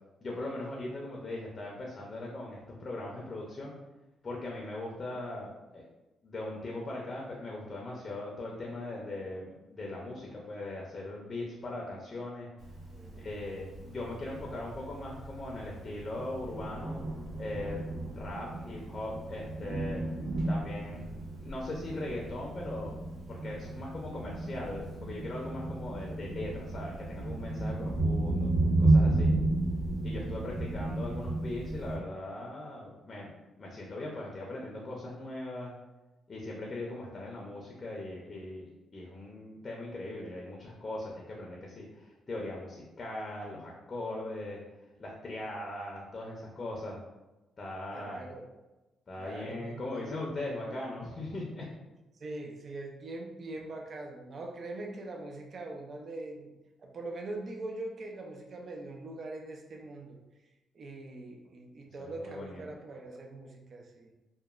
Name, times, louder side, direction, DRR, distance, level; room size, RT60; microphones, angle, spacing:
voice 1, 0.2-3.7 4.2-5.8 6.2-12.5 13.2-17.0 17.4-17.8 18.1-20.0 20.5-23.0 23.3-28.5 28.8-29.3 30.0-35.7 36.3-44.6 45.0-47.0 47.6-48.3 49.1-51.6 62.0-62.6, left 2 dB, 35° left, -2 dB, 0.5 m, -39 dB
Thunder, 12.6-31.9, right 2 dB, 75° right, 1.0 m, -32 dB
voice 2, 12.9-13.4 47.9-48.5 49.2-50.1 52.2-56.5 56.8-60.2 60.7-64.1, right 2 dB, 50° right, 2 dB, 0.3 m, -42 dB
2.9 x 2.1 x 2.3 m, 1.1 s
cardioid pair, 90°, 0 cm